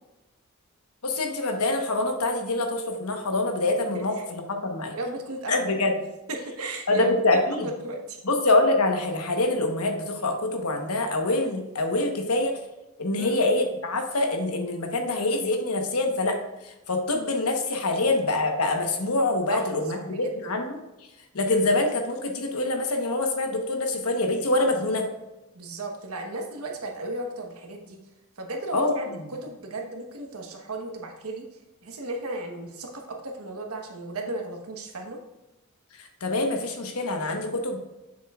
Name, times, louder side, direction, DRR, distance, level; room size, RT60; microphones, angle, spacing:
voice 1, 1.0-4.9 5.5-5.9 6.9-7.7 8.2-12.5 13.0-16.4 16.9-20.8 21.3-25.1 28.7-29.1 36.0-37.9, left 2 dB, 80° left, 4 dB, 1.1 m, -25 dB
voice 2, 3.9-4.3 4.9-5.7 6.3-8.2 13.2-13.4 17.9-18.2 19.5-19.7 20.1-20.6 25.5-28.0 28.4-31.5 31.8-35.2, right 2 dB, 80° right, 2 dB, 1.2 m, -35 dB
7.6 x 6.4 x 2.4 m, 1.0 s
head